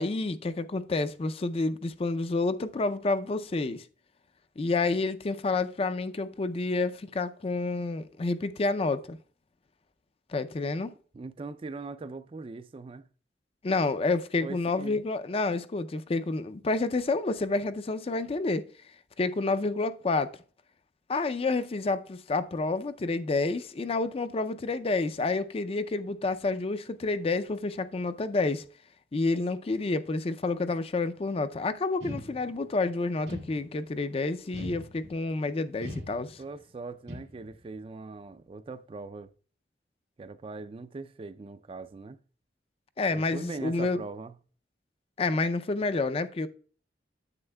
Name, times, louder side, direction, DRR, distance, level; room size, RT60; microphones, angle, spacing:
voice 1, 0.0-3.8 4.6-9.2 10.3-10.9 13.6-18.7 19.2-20.4 21.1-28.6 29.1-36.4 43.0-44.0 45.2-46.5, left 3 dB, 35° left, 0.4 m, -29 dB
voice 2, 11.1-13.1 14.4-15.0 36.4-39.3 40.2-42.2 43.1-44.4, right 3 dB, 30° right, 0.3 m, -41 dB
sound 1, 32.0-32.8 33.3-34.0 34.5-35.3 35.8-36.6 37.1-37.7, equal, 80° right, 2.0 m, -42 dB
9.7 x 7.9 x 2.2 m
head